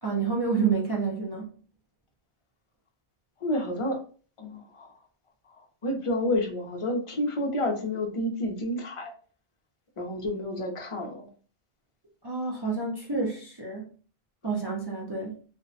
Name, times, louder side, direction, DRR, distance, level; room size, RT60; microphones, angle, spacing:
voice 1, 0.0-1.5 12.2-13.9 14.4-15.3, right 5 dB, 40° right, 0.4 m, -29 dB
voice 2, 3.4-4.0 4.4-4.9 5.5-9.1 10.0-11.3, left 1 dB, 40° left, 0.5 m, -30 dB
2.5 x 2.1 x 2.5 m
omnidirectional pair, 1.1 m